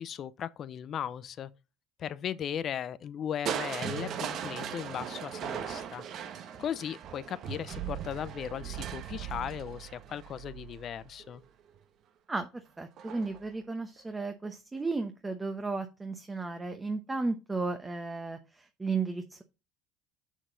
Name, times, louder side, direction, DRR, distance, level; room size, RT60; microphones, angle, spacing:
voice 1, 0.0-1.5 2.0-6.0 6.6-11.4, left 9 dB, 45° left, 0.6 m, -37 dB
Crushing, 3.5-11.4 13.0-13.5 14.0-14.1, right 8 dB, 55° right, 1.1 m, -38 dB
voice 2, 12.3-19.4, right 3 dB, 15° right, 0.9 m, -34 dB
6.5 x 5.9 x 3.9 m
supercardioid pair, 95°, 0 cm